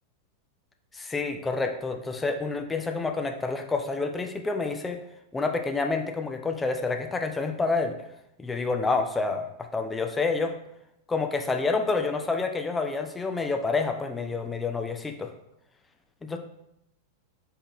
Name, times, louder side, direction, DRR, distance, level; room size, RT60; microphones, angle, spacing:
voice 1, 0.9-5.0 5.3-8.0 8.4-10.6 11.1-15.3 16.2-16.4, left 3 dB, 10° left, 5 dB, 0.4 m, -28 dB
3.8 x 3.5 x 2.6 m, 0.81 s
figure-of-eight pair, 90°, 0 cm